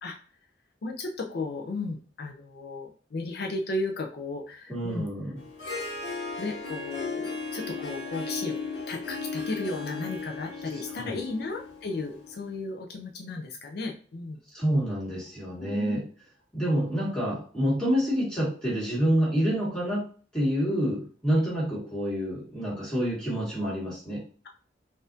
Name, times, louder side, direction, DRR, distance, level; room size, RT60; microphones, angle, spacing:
voice 1, 0.8-5.1 6.4-8.6 8.9-14.4 15.6-16.0, left 2 dB, 60° left, 2 dB, 0.4 m, -34 dB
voice 2, 4.7-5.4 11.0-11.2 14.5-16.0 16.5-20.0 20.3-24.2, equal, 5° left, -7 dB, 1.7 m, -27 dB
Harp, 5.4-12.5, left 4 dB, 85° left, 1.2 m, -36 dB
4.0 x 2.5 x 2.6 m, 0.41 s
head